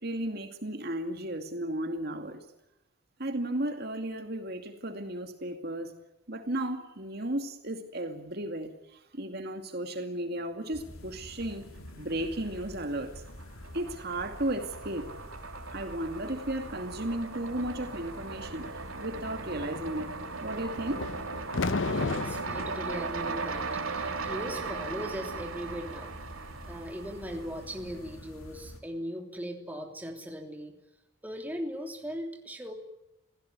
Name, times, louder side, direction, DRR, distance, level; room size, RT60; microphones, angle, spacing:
voice 1, 0.0-2.4 3.2-5.9 6.3-11.6 12.0-13.2 13.7-15.1 15.7-18.7 19.0-20.1 20.4-21.1, right 1 dB, 50° right, 6 dB, 2.4 m, -34 dB
sound 1, 10.7-28.8, left 1 dB, 85° left, 3.1 m, -47 dB
sound 2, 11.9-12.6 12.9-28.1, right 4 dB, 80° right, 3.0 m, -38 dB
sound 3, 20.9-22.8, left 3 dB, 65° left, 0.8 m, -31 dB
voice 2, 21.7-26.1 26.7-30.7 31.2-32.7, equal, 10° right, 3 dB, 3.2 m, -39 dB
27.5 x 17.0 x 9.7 m, 0.91 s
head